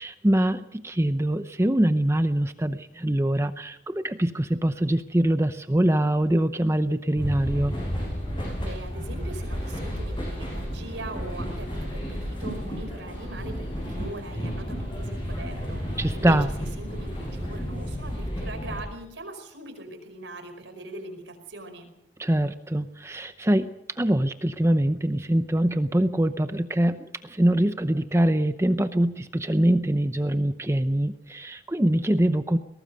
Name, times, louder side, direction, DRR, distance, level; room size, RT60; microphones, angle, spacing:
voice 1, 0.0-7.7 16.0-16.5 22.2-23.7 24.0-32.6, right 1 dB, 15° right, 10 dB, 0.7 m, -23 dB
sound 1, 7.2-18.8, equal, 25° left, 7.7 m, -32 dB
voice 2, 8.6-21.9, right 2 dB, 85° right, 6 dB, 5.0 m, -41 dB
22.5 x 18.0 x 6.6 m, 0.82 s
head